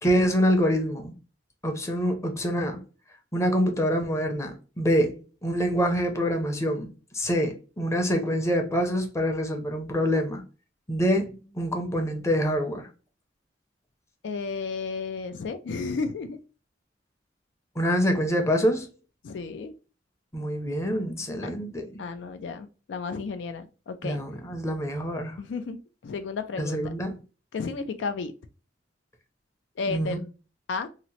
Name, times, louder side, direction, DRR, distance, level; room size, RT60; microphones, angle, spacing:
voice 1, 0.0-1.1 1.6-2.8 3.3-10.4 10.9-12.9 17.8-18.9 20.3-22.0 24.0-25.4 26.6-27.1 29.9-30.2, equal, 15° left, 0.6 m, -26 dB
voice 2, 14.2-16.4 19.2-19.7 21.4-21.5 22.0-24.2 25.4-26.8 27.5-28.3 29.8-30.2 30.7-30.9, left 4 dB, 80° left, 0.4 m, -33 dB
2.8 x 2.0 x 4.1 m
head